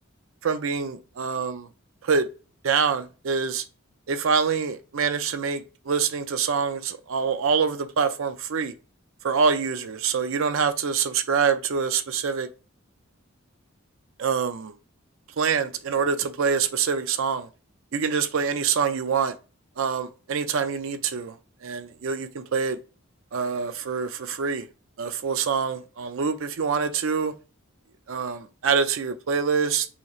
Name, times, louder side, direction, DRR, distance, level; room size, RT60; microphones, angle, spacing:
voice 1, 0.4-1.7 2.0-2.3 2.6-3.6 4.1-8.7 9.2-12.5 14.2-14.7 15.4-17.5 17.9-19.4 19.8-21.4 21.6-22.8 23.3-24.7 25.0-27.3 28.1-29.9, right 6 dB, 70° right, 0.5 m, -25 dB
5.7 x 3.0 x 2.4 m
head